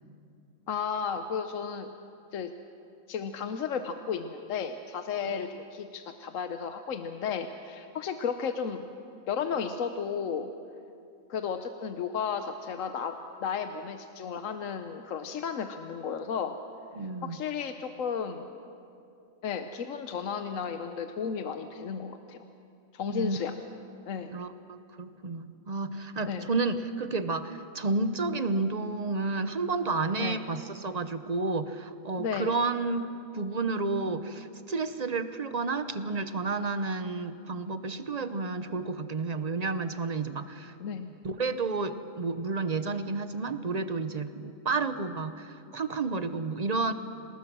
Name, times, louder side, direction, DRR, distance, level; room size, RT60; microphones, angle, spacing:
voice 1, 0.7-1.9 2.3-2.5 3.1-8.9 9.3-10.5 11.3-16.6 17.2-18.5 19.4-22.4 22.9-23.6 24.1-24.3 26.3-26.5 30.2-30.4 32.2-32.6 40.8-41.2, left 6 dB, 70° left, 7 dB, 1.2 m, -33 dB
voice 2, 16.9-17.4 23.1-23.4 24.3-40.7 41.2-46.9, right 3 dB, 35° right, 10 dB, 0.8 m, -31 dB
27.5 x 19.5 x 6.1 m, 2.6 s
omnidirectional pair, 1.4 m